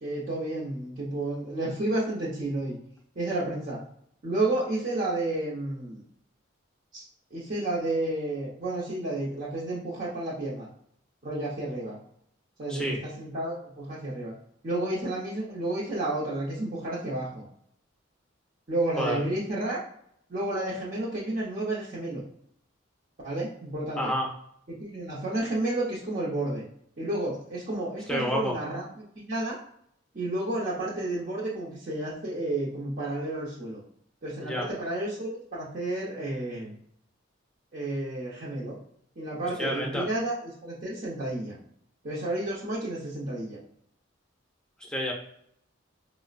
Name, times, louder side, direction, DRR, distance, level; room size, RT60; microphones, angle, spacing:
voice 1, 0.0-2.8 3.2-3.8 4.2-6.0 6.9-7.0 7.3-10.7 11.2-12.0 12.6-14.3 14.6-17.4 18.7-19.8 20.3-22.2 23.2-24.1 24.7-26.6 27.0-29.6 30.1-33.8 34.2-36.7 37.7-38.8 39.2-41.6 42.0-43.6, right 2 dB, 40° right, -7 dB, 0.7 m, -31 dB
voice 2, 24.0-24.3 28.1-28.5 34.4-34.7 39.6-40.1 44.9-45.1, equal, 5° left, -1 dB, 0.6 m, -29 dB
4.7 x 2.0 x 2.4 m, 0.70 s
head